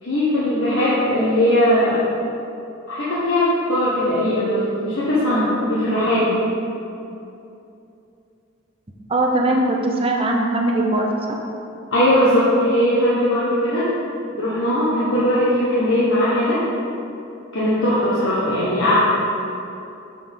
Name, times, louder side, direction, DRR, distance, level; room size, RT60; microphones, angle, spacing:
voice 1, 0.0-2.1 2.9-6.3 11.9-13.9 14.4-16.6 17.5-18.9, left 1 dB, 65° left, -10 dB, 1.3 m, -19 dB
voice 2, 9.1-11.4, right 1 dB, 25° right, 0 dB, 0.6 m, -20 dB
6.8 x 5.9 x 3.7 m, 2.7 s
head